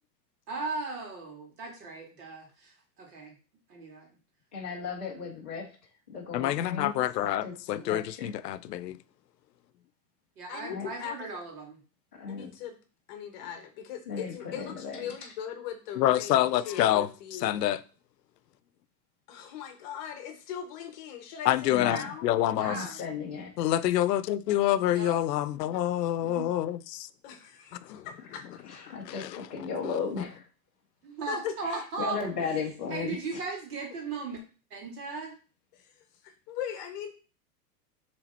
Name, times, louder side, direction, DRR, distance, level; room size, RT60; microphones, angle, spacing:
voice 1, 0.5-3.3 3.7-4.1 7.8-7.9 10.4-11.8 22.6-23.0 24.9-25.2 26.2-26.5 31.0-32.5 32.9-34.4 34.7-35.3, right 4 dB, 70° right, 2.3 m, -37 dB
voice 2, 4.5-5.7 6.1-7.0 7.4-7.5 7.9-8.3 10.7-10.9 12.1-12.5 13.4-13.5 14.1-15.1 21.7-22.1 22.7-23.5 28.7-30.4 32.0-33.1, left 5 dB, 10° left, 0.3 m, -35 dB
voice 3, 6.3-9.0 16.0-17.8 21.4-22.8 23.6-27.1 27.8-28.1 29.0-29.5, left 13 dB, 90° left, 0.7 m, -27 dB
voice 4, 10.5-11.4 12.3-12.8 13.1-17.6 19.3-22.3 27.2-28.8 29.3-29.4 31.3-31.5 35.7-35.9 36.2-37.1, left 9 dB, 30° left, 0.8 m, -40 dB
7.1 x 3.5 x 4.1 m
supercardioid pair, 165°, 47 cm